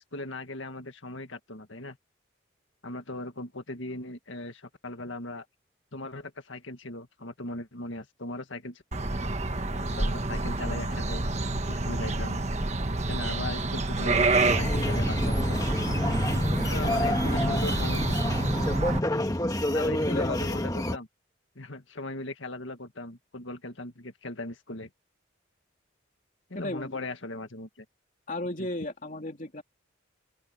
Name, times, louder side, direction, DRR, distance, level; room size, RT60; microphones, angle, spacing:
voice 1, 0.0-2.0 2.8-5.5 5.9-8.8 9.8-11.2 11.7-12.4 13.1-15.7 16.7-18.3 19.7-21.1 21.6-24.9 26.5-27.9 28.6-28.7, left 2 dB, 70° left, 2.0 m, -38 dB
sound 1, 8.9-19.0, right 2 dB, 35° right, 1.4 m, -28 dB
sound 2, 14.3-21.0, left 1 dB, 20° left, 1.6 m, -28 dB
voice 2, 20.1-20.6 26.5-27.1 28.3-29.6, left 1 dB, 40° left, 3.2 m, -34 dB
open air
head